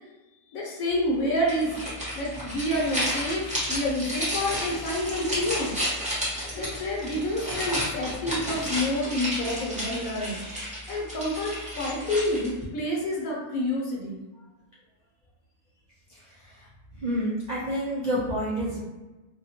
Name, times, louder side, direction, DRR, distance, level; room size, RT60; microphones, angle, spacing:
voice 1, 0.5-1.8 2.1-5.8 6.5-10.4 10.7-14.2, left 1 dB, 70° left, -2 dB, 1.1 m, -28 dB
sound 1, 1.5-12.6, equal, 5° right, 0.6 m, -32 dB
voice 2, 16.1-18.8, equal, 75° right, -7 dB, 0.4 m, -30 dB
2.7 x 2.2 x 2.8 m, 1.1 s
omnidirectional pair, 1.6 m